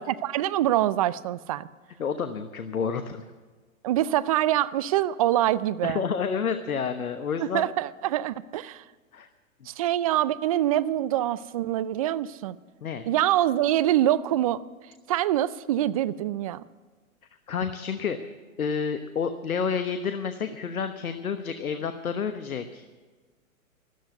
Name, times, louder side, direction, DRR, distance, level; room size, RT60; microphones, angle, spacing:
voice 1, 0.0-1.7 3.8-6.0 7.4-8.8 9.7-12.6 13.1-14.6 15.1-16.6, right 13 dB, 25° right, 18 dB, 0.4 m, -25 dB
voice 2, 2.0-3.2 5.8-7.7 9.1-9.3 12.8-13.0 17.5-18.3 18.6-22.8, left 6 dB, 80° left, 9 dB, 1.2 m, -29 dB
13.0 x 13.0 x 8.1 m, 1.4 s
hypercardioid pair, 125°, 42 cm